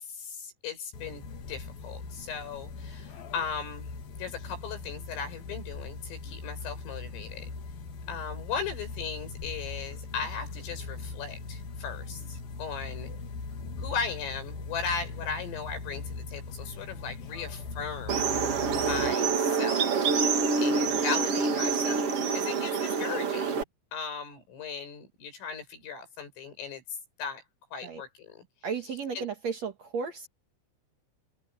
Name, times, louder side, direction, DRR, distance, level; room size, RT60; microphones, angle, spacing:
voice 1, 0.0-3.9 4.2-7.5 8.1-13.1 13.8-18.3 18.7-20.2 20.6-23.6 23.9-26.8 27.2-27.4 27.7-28.5 29.2-29.3, left 6 dB, 90° left, 9.3 m, -37 dB
sound 1, 0.9-19.1, left 3 dB, 55° left, 3.8 m, -40 dB
sound 2, 18.1-23.6, right 5 dB, 80° right, 1.3 m, -26 dB
voice 2, 28.6-30.3, right 5 dB, 60° right, 1.8 m, -34 dB
omnidirectional pair, 5.7 m